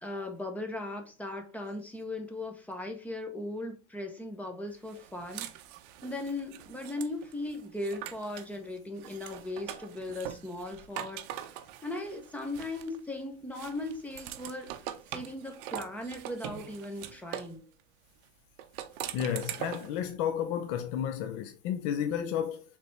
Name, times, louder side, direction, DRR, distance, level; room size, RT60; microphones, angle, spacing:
voice 1, 0.0-5.5 6.0-11.2 11.8-14.7 15.1-17.6, left 2 dB, 5° left, 0.7 m, -38 dB
sound 1, 4.9-8.5 9.0-13.1 13.5-17.6 18.6-20.0, right 11 dB, 55° right, 0.6 m, -42 dB
voice 2, 19.1-22.6, left 9 dB, 45° left, 0.5 m, -32 dB
4.9 x 3.4 x 3.1 m
supercardioid pair, 140°, 33 cm